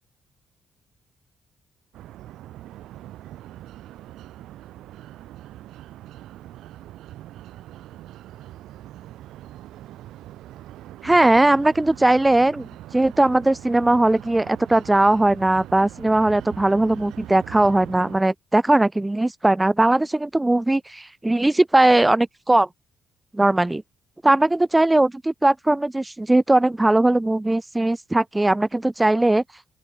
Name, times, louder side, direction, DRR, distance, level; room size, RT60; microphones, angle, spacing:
sound 1, 1.9-18.2, right 14 dB, 85° right, 1.3 m, -42 dB
voice 1, 11.0-12.7 12.9-22.7 23.3-23.8 24.2-29.4, right 2 dB, 15° right, 0.4 m, -19 dB
open air
cardioid pair, 90°, 0 cm